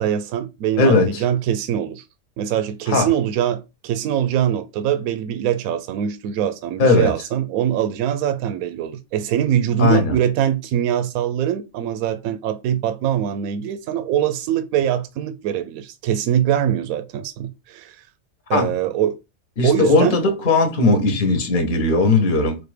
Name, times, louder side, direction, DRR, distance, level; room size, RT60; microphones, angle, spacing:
voice 1, 0.0-2.0 2.4-18.0 18.5-19.2 19.6-20.2, right 10 dB, 80° right, 1.0 m, -23 dB
voice 2, 0.8-1.2 2.9-3.1 6.8-7.1 9.8-10.2 18.5-18.7 19.6-22.6, left 3 dB, 40° left, 1.1 m, -18 dB
4.2 x 2.5 x 4.8 m
omnidirectional pair, 1.5 m